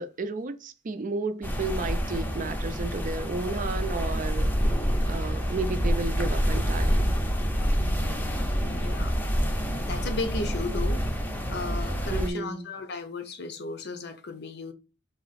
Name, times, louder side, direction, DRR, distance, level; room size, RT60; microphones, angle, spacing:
voice 1, 0.0-4.5 5.1-7.1 12.1-12.7, right 3 dB, 45° right, 0.4 m, -33 dB
sound 1, 1.4-12.3, equal, 10° left, 0.6 m, -27 dB
voice 2, 7.8-9.2 9.6-11.0 11.5-14.7, left 3 dB, 60° left, 0.7 m, -36 dB
3.9 x 2.9 x 4.1 m
head